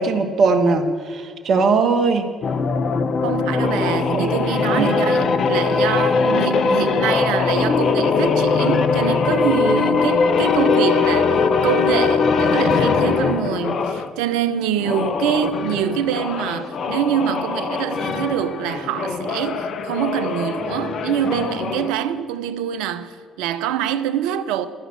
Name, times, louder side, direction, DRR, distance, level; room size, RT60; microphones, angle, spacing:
voice 1, 0.0-2.3 4.1-4.3 4.7-5.1, right 4 dB, 60° right, 1.6 m, -19 dB
sound 1, 2.4-14.1 14.8-21.9, left 5 dB, 55° left, 0.9 m, -21 dB
voice 2, 3.2-24.7, right 9 dB, 80° right, 0.7 m, -25 dB
13.5 x 6.0 x 8.8 m
hypercardioid pair, 55°, 0 cm